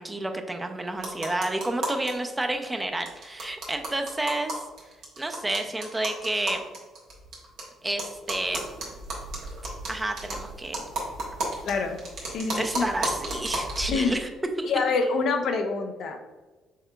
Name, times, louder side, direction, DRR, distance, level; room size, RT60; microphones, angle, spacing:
voice 1, 0.0-4.6 5.2-6.6 7.8-8.7 9.9-10.8 12.5-14.3 14.6-14.7, right 2 dB, 15° right, 5 dB, 0.6 m, -30 dB
sound 1, 1.0-2.1 2.4-2.5 2.7-2.8 3.1-7.6 8.0-14.0, right 2 dB, 65° right, 1.2 m, -34 dB
voice 2, 11.6-12.0 12.3-12.8 13.9-14.1 14.6-16.3, left 4 dB, 60° left, 5 dB, 0.5 m, -26 dB
5.6 x 3.6 x 2.3 m, 1.2 s
hypercardioid pair, 50°, 0 cm